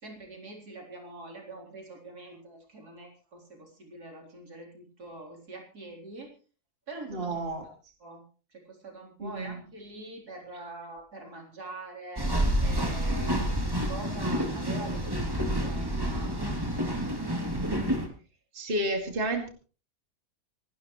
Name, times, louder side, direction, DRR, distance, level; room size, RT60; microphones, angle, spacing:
voice 1, 0.0-6.3 6.9-7.4 8.0-8.2 8.5-12.3 12.6-16.7, right 2 dB, 70° right, 0 dB, 4.4 m, -44 dB
voice 2, 7.1-7.6 9.2-9.6 18.5-19.5, right 1 dB, 35° right, 3 dB, 2.5 m, -31 dB
sound 1, 12.2-18.1, right 1 dB, 15° right, 3.0 m, -29 dB
26.5 x 12.5 x 3.2 m, 0.37 s
omnidirectional pair, 1.7 m